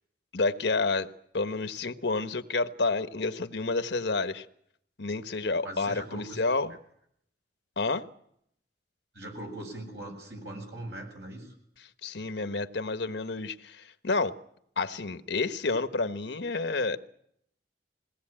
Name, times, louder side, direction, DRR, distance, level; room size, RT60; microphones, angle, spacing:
voice 1, 0.3-1.1 1.3-4.4 5.0-6.8 7.8-8.0 11.8-14.3 14.8-17.0, left 3 dB, 85° left, 11 dB, 1.2 m, -29 dB
voice 2, 5.6-6.4 9.2-11.5, right 1 dB, 85° right, 2 dB, 7.4 m, -40 dB
22.0 x 18.5 x 8.9 m, 0.72 s
head